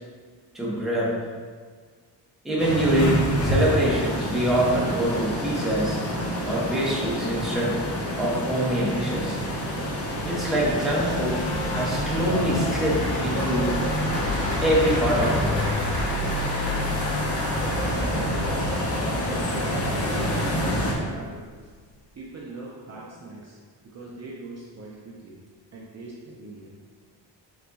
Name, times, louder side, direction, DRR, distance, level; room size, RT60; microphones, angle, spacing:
voice 1, 0.5-1.2 2.4-6.0 6.4-7.8 8.2-9.4 10.3-11.4 11.7-13.7 14.6-15.7 22.9-23.1, right 1 dB, ahead, -6 dB, 0.7 m, -25 dB
sound 1, 2.6-20.9, equal, 35° left, 0.7 m, -27 dB
sound 2, 8.6-21.7, left 2 dB, 90° left, 0.8 m, -35 dB
Applause, 11.9-19.0, left 1 dB, 55° left, 1.1 m, -36 dB
voice 2, 19.2-19.6 20.1-21.4 22.1-23.6 23.9-25.4 25.7-26.7, right 2 dB, 40° right, -5 dB, 0.5 m, -41 dB
4.7 x 4.0 x 2.3 m, 1.5 s
wide cardioid pair, 170°, 43 cm